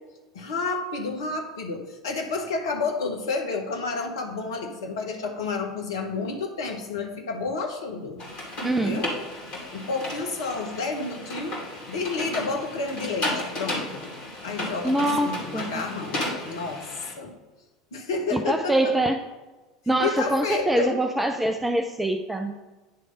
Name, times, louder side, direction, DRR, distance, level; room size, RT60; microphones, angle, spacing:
voice 1, 0.3-8.2 8.8-9.1 9.7-11.6 11.9-14.0 14.4-16.9 17.2-17.4 17.9-19.0 20.0-21.0, left 4 dB, 70° left, 3 dB, 1.0 m, -30 dB
sound 1, 8.2-17.1, left 1 dB, 45° left, 2.4 m, -34 dB
voice 2, 8.6-9.1 14.8-15.8 18.3-19.2 19.9-22.6, right 1 dB, 5° right, 4 dB, 0.5 m, -24 dB
9.5 x 3.2 x 5.3 m, 1.2 s
figure-of-eight pair, 75°, 2 cm